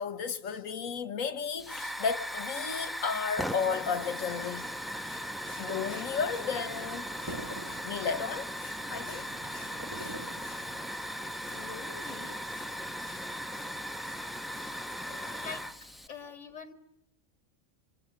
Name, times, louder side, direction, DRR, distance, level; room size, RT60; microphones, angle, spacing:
voice 1, 0.0-4.8 5.1-5.2 5.5-7.4 7.7-9.7 10.0-10.2 10.4-10.6 11.5-11.6 12.0-12.1 12.6-12.7 13.0-13.2 13.5-13.7 14.1-14.2 14.6-14.7, left 6 dB, 85° left, 1.7 m, -34 dB
Hiss / Fire, 1.6-16.1, equal, ahead, 0.8 m, -38 dB
sound 1, 4.2-15.6, right 1 dB, 60° right, 5.4 m, -58 dB
sound 2, 5.4-11.3, right 1 dB, 15° right, 2.4 m, -47 dB
voice 2, 11.5-12.4 15.1-15.6 16.1-16.7, left 5 dB, 65° left, 2.1 m, -44 dB
27.5 x 26.5 x 8.0 m
omnidirectional pair, 1.4 m